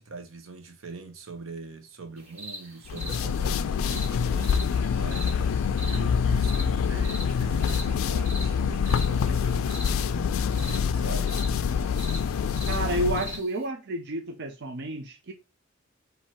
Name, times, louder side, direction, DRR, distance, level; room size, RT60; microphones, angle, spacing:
voice 1, 0.0-11.3, right 3 dB, 85° right, 1.0 m, -42 dB
sound 1, 2.2-13.7, equal, 35° right, 2.2 m, -43 dB
sound 2, 2.9-13.4, left 6 dB, 80° left, 0.3 m, -26 dB
voice 2, 12.7-15.3, right 1 dB, 60° right, 0.6 m, -30 dB
4.5 x 2.8 x 4.2 m
head